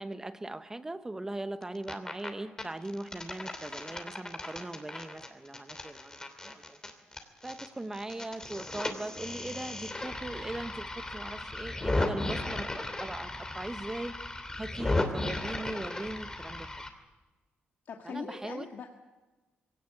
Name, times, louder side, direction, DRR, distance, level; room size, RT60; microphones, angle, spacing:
voice 1, 0.0-6.2 6.4-6.8 7.4-14.1 14.6-16.7 18.0-18.7, right 2 dB, 15° right, 10 dB, 1.0 m, -39 dB
sound 1, 1.6-2.3 2.6-7.7 7.9-16.9, left 2 dB, 20° left, 2.8 m, -35 dB
voice 2, 17.9-18.9, left 6 dB, 65° left, 2 dB, 1.8 m, -41 dB
22.5 x 17.5 x 8.7 m, 1.2 s
cardioid pair, 125°, 4 cm